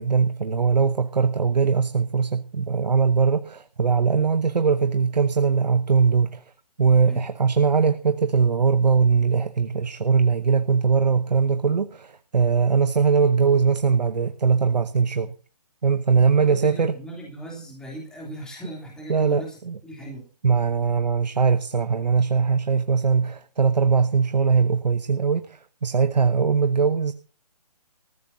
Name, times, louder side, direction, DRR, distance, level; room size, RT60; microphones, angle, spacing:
voice 1, 0.0-6.4 6.8-15.3 15.8-16.9 19.1-19.8 20.4-27.1, right 5 dB, 85° right, 11 dB, 0.9 m, -21 dB
voice 2, 16.1-20.3, right 1 dB, 5° left, -2 dB, 3.0 m, -38 dB
20.0 x 14.5 x 2.7 m, 0.37 s
hypercardioid pair, 150°, 21 cm